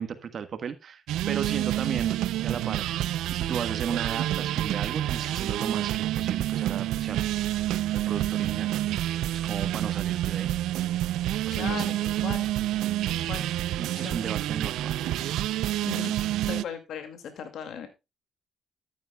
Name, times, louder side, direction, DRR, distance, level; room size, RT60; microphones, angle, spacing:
voice 1, 0.0-2.8 3.3-10.5 11.6-12.0 13.8-15.4, right 7 dB, 55° right, 10 dB, 1.5 m, -35 dB
sound 1, 1.1-16.6, right 13 dB, 90° right, 0.5 m, -28 dB
voice 2, 11.5-12.5 13.1-13.5 13.9-14.2 15.8-16.2 16.5-17.9, left 7 dB, 75° left, 7 dB, 2.2 m, -37 dB
13.0 x 10.5 x 2.3 m, 0.25 s
cardioid pair, 90°, 0 cm